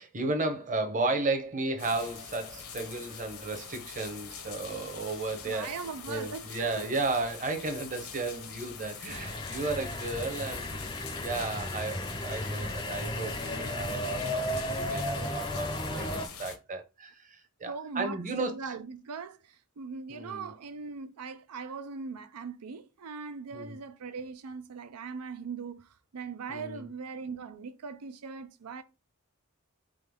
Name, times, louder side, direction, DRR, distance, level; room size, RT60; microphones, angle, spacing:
voice 1, 0.0-5.7 6.1-15.7 16.0-18.7 20.1-20.5 23.5-23.8 26.5-26.9, right 3 dB, 35° right, 0.8 m, -34 dB
sound 1, 1.8-16.6, left 7 dB, 70° left, 1.0 m, -44 dB
voice 2, 5.4-6.9 9.0-9.1 17.7-28.8, right 5 dB, 85° right, 0.5 m, -40 dB
sound 2, 9.1-16.3, left 1 dB, 20° left, 0.6 m, -34 dB
3.8 x 3.8 x 3.5 m
head